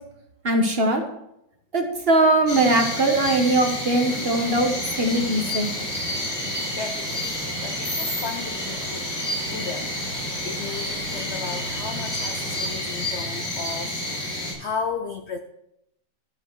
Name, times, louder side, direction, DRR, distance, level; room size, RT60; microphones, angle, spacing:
voice 1, 0.4-1.0 1.7-5.7, right 2 dB, 40° right, 4 dB, 1.2 m, -21 dB
sound 1, 2.5-14.5, left 1 dB, 90° left, 5.5 m, -29 dB
sound 2, 4.1-12.7, right 2 dB, 70° right, 2.8 m, -42 dB
voice 2, 6.3-9.1 9.4-15.4, left 5 dB, 65° left, 7 dB, 0.6 m, -35 dB
12.5 x 7.4 x 4.7 m, 0.80 s
omnidirectional pair, 1.9 m